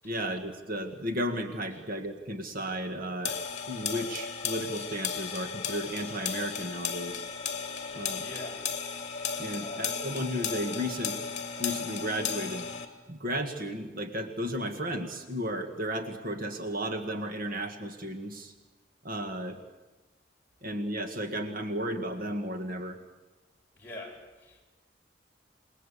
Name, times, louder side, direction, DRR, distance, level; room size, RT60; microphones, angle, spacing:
voice 1, 0.0-3.4 3.7-7.3 7.9-8.3 9.4-11.2 11.6-12.7 13.1-18.5 19.0-19.6 20.6-23.0, equal, 50° right, 1.8 m, -34 dB
sound 1, 3.2-12.9, left 6 dB, 40° left, 2.6 m, -35 dB
voice 2, 7.9-8.7 9.5-9.9 23.7-24.6, left 1 dB, 10° left, 7.6 m, -45 dB
28.0 x 20.5 x 8.4 m
head